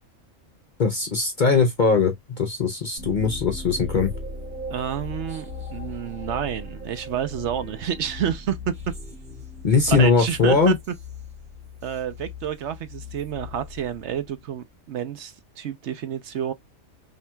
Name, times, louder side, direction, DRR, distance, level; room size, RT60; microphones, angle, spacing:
voice 1, 0.8-4.1 9.6-10.8, left 4 dB, 50° left, 0.6 m, -20 dB
sound 1, 3.0-14.5, left 3 dB, 40° right, 1.9 m, -38 dB
voice 2, 4.7-8.7 9.9-10.8 11.8-16.5, right 9 dB, 65° right, 0.9 m, -29 dB
5.7 x 2.8 x 2.2 m
omnidirectional pair, 1.4 m